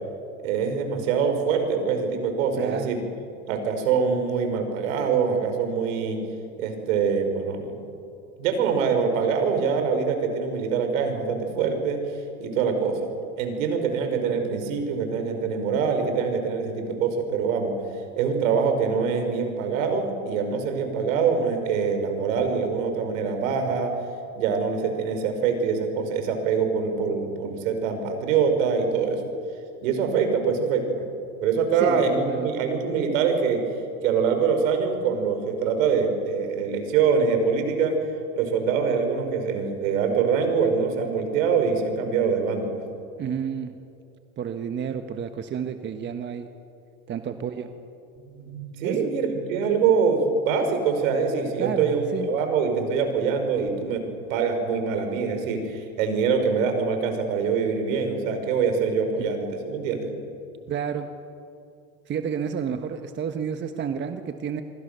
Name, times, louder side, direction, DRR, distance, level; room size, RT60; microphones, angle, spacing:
voice 1, 0.4-3.0 3.5-6.2 6.6-7.8 8.4-12.1 12.4-13.0 13.4-17.7 18.2-23.9 24.4-29.2 29.8-31.0 31.4-33.6 34.0-38.0 38.4-42.8 48.2-54.0 54.3-60.1, right 5 dB, 70° right, 6 dB, 5.5 m, -24 dB
voice 2, 2.6-3.0 31.8-32.5 43.2-43.7 44.4-46.5 47.1-47.7 48.8-49.1 51.6-52.3 59.2-59.3 60.7-61.1 62.1-64.6, right 7 dB, 25° right, 7 dB, 1.3 m, -30 dB
27.0 x 23.5 x 6.9 m, 2.6 s
supercardioid pair, 120°, 41 cm